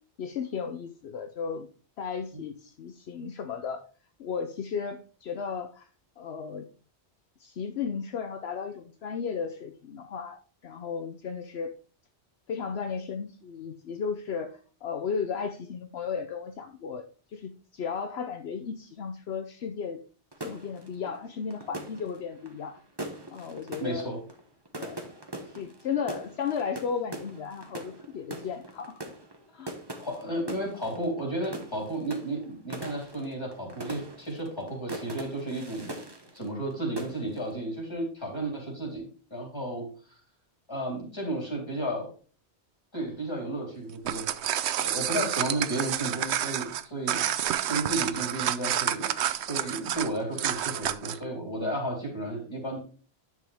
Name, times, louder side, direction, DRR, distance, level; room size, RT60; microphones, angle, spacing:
voice 1, 0.2-1.7 2.0-3.8 4.2-5.9 6.2-6.7 7.4-11.7 12.5-17.0 17.3-20.0 20.4-22.8 23.3-24.2 24.7-25.0 25.5-29.0 29.5-29.7, left 6 dB, 70° left, 8 dB, 1.0 m, -34 dB
sound 1, 20.3-36.7 37.0-37.5, right 1 dB, 25° right, 1.3 m, -42 dB
voice 2, 23.8-24.2 30.0-36.0 36.3-39.9 40.7-42.1 42.9-44.3 44.8-47.2 47.7-49.1 49.5-52.8, right 1 dB, 25° left, -2 dB, 4.0 m, -33 dB
sound 2, 43.9-51.2, right 10 dB, 80° right, 0.9 m, -29 dB
10.0 x 6.3 x 3.5 m, 0.38 s
omnidirectional pair, 1.1 m